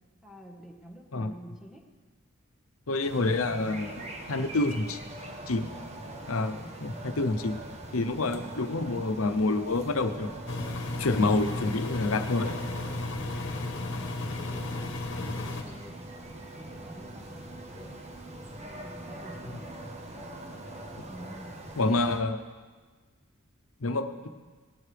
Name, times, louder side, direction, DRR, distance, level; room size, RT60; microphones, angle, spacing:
voice 1, 0.2-1.8 13.6-16.1 16.5-18.1 18.6-19.7 21.1-21.6, equal, 5° right, 0 dB, 1.4 m, -49 dB
voice 2, 2.9-4.0 4.3-5.0 5.5-5.7 6.3-7.6 7.9-10.3 11.0-12.6 21.8-22.4 23.8-24.3, left 2 dB, 80° left, 8 dB, 0.8 m, -28 dB
sound 1, 3.0-22.2, right 1 dB, 30° right, 1.1 m, -43 dB
sound 2, 8.9-21.0, right 3 dB, 80° right, 1.8 m, -51 dB
Engine, 10.5-15.6, left 2 dB, 60° left, 1.3 m, -34 dB
18.5 x 12.5 x 3.4 m, 1.4 s
head